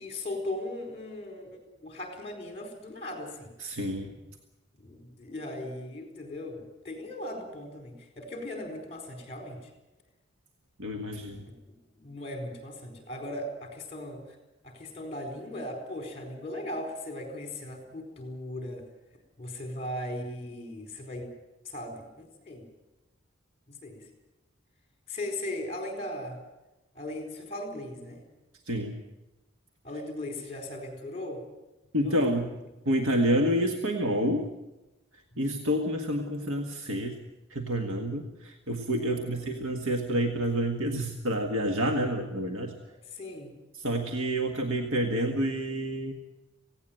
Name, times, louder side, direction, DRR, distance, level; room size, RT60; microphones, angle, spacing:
voice 1, 0.0-3.5 4.8-9.7 11.6-14.4 14.6-18.9 19.4-21.3 21.6-22.7 23.7-24.1 25.1-26.4 26.9-28.2 29.8-31.4 31.9-32.4 35.3-35.6 39.0-39.5 43.1-43.6, left 1 dB, 30° left, 4 dB, 4.4 m, -38 dB
voice 2, 3.6-4.1 10.8-11.5 28.7-29.0 31.9-32.5 32.9-34.5 35.4-37.1 37.5-42.7 43.7-46.1, equal, 90° right, 3 dB, 1.8 m, -28 dB
18.0 x 17.0 x 9.1 m, 1.0 s
head